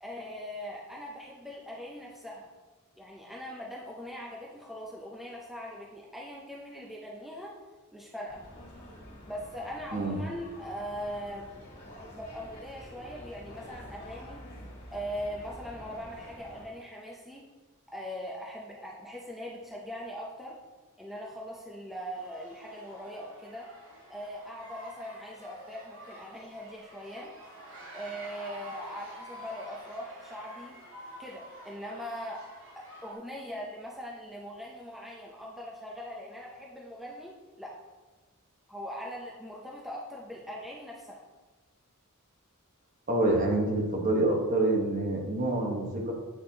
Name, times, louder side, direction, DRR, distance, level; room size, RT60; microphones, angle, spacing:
voice 1, 0.0-2.5 3.0-7.5 7.9-8.4 9.3-11.5 12.1-14.4 14.9-17.5 17.9-20.6 21.0-23.7 24.1-27.3 27.9-30.8 31.2-32.4 32.8-37.8 38.7-41.2, equal, ahead, -3 dB, 0.5 m, -41 dB
sound 1, 8.3-16.6, equal, 50° left, 2.0 m, -48 dB
sound 2, 22.1-33.2, equal, 65° right, 1.6 m, -49 dB
voice 2, 43.1-46.1, right 2 dB, 40° right, 0 dB, 1.0 m, -27 dB
8.4 x 4.3 x 2.8 m, 1.2 s
head